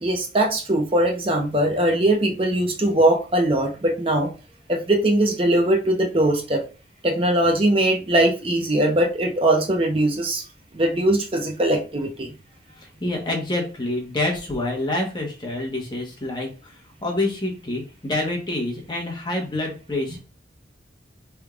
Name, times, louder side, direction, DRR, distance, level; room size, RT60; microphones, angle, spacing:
voice 1, 0.0-4.3 4.7-6.6 7.0-10.4 10.7-12.3, right 1 dB, 30° right, 2 dB, 0.6 m, -21 dB
voice 2, 12.7-20.2, left 2 dB, 25° left, 0 dB, 1.1 m, -27 dB
4.4 x 3.5 x 2.4 m, 0.34 s
head